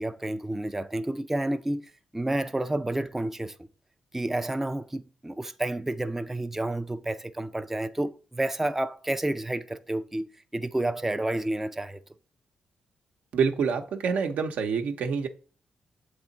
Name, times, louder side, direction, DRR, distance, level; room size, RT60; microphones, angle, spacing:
voice 1, 0.0-3.5 4.1-12.0, right 1 dB, 10° right, 0.4 m, -30 dB
voice 2, 13.3-15.3, right 6 dB, 75° right, 0.7 m, -27 dB
7.3 x 3.4 x 3.9 m
cardioid pair, 80°, 3 cm